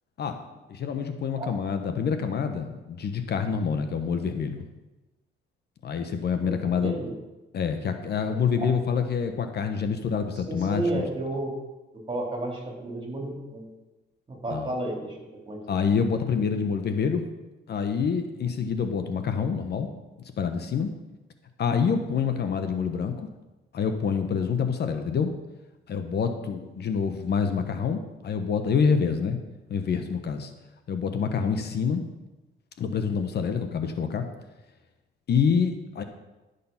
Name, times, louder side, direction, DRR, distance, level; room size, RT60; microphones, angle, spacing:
voice 1, 0.7-4.7 5.8-7.0 7.5-11.0 14.5-14.7 15.7-17.2 17.7-19.9 20.4-20.9 21.6-23.3 23.7-25.3 25.9-29.4 29.7-30.5 30.9-32.0 32.8-34.3 35.3-36.0, left 6 dB, 55° left, 7 dB, 1.0 m, -27 dB
voice 2, 6.4-7.1 8.6-8.7 10.5-11.5 12.1-13.7 14.3-15.2 15.5-15.6, right 2 dB, 25° right, 0 dB, 3.6 m, -32 dB
12.0 x 6.7 x 5.6 m, 1.1 s
cardioid pair, 90°, 20 cm